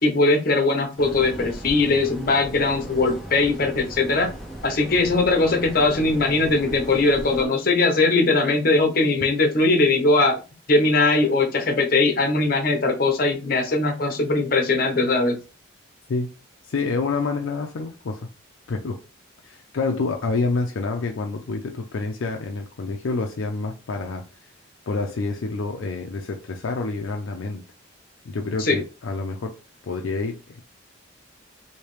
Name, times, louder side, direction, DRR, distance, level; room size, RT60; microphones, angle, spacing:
voice 1, 0.0-4.3 4.6-10.4 10.7-15.4 28.6-28.8, left 3 dB, 45° left, 0.8 m, -20 dB
sound 1, 1.0-7.5, equal, ahead, 0.6 m, -38 dB
voice 2, 16.6-18.3 18.7-19.0 19.4-24.5 24.9-27.6 28.2-29.6 29.8-30.6, left 3 dB, 75° left, 0.4 m, -28 dB
3.2 x 2.7 x 3.1 m
head